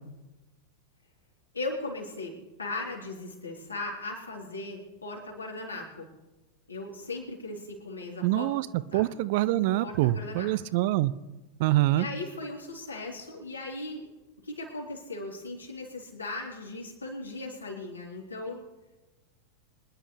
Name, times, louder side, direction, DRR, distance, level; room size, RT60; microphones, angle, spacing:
voice 1, 1.5-6.1 6.7-8.5 8.9-9.0 9.8-10.5 11.9-14.1 14.4-18.6, left 2 dB, 80° left, -2 dB, 4.0 m, -38 dB
voice 2, 8.2-8.7 8.9-11.1 11.6-12.1, right 16 dB, 50° right, 17 dB, 0.6 m, -25 dB
25.0 x 11.0 x 3.4 m, 1.1 s
figure-of-eight pair, 90°, 0 cm